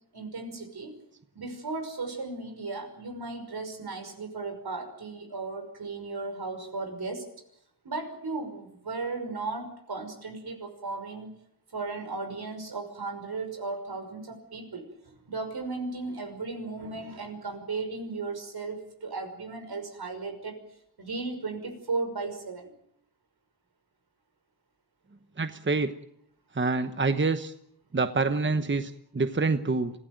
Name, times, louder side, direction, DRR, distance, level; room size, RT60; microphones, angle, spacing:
voice 1, 0.1-0.9 1.3-7.2 7.8-11.3 11.7-20.6 21.0-22.7, right 3 dB, 75° right, 5 dB, 5.9 m, -36 dB
voice 2, 25.4-25.9 26.6-27.5 27.9-29.9, right 3 dB, 30° right, 9 dB, 1.1 m, -26 dB
25.5 x 16.0 x 9.2 m, 0.74 s
wide cardioid pair, 90°, 39 cm